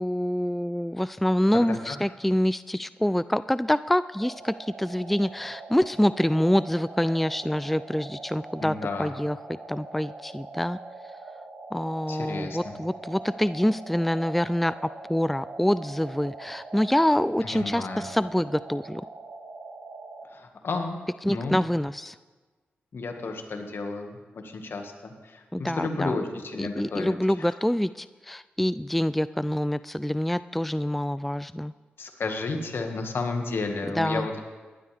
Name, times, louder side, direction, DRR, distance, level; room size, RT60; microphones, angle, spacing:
voice 1, 0.0-9.4 9.7-10.8 11.7-19.0 21.2-22.2 25.5-26.2 26.6-31.7 33.9-34.4, equal, 5° left, 16 dB, 0.3 m, -26 dB
voice 2, 1.5-1.9 8.6-9.1 12.1-12.6 17.4-18.1 20.3-21.0 21.3-21.6 22.9-27.5 32.0-34.4, left 3 dB, 65° left, 4 dB, 1.9 m, -32 dB
sound 1, 4.2-20.3, right 3 dB, 75° right, 2.1 m, -43 dB
18.0 x 12.0 x 3.5 m, 1.3 s
supercardioid pair, 45°, 4 cm